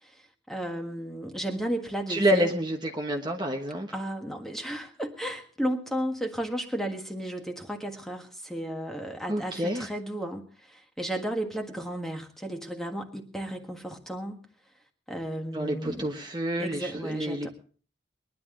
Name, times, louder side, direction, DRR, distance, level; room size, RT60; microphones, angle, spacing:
voice 1, 0.0-2.5 3.9-14.4 15.1-16.1 16.6-17.5, right 1 dB, ahead, 4 dB, 1.6 m, -34 dB
voice 2, 2.1-3.9 9.3-9.9 15.5-17.5, equal, 20° right, 2 dB, 1.2 m, -28 dB
21.5 x 11.0 x 3.8 m, 0.41 s
head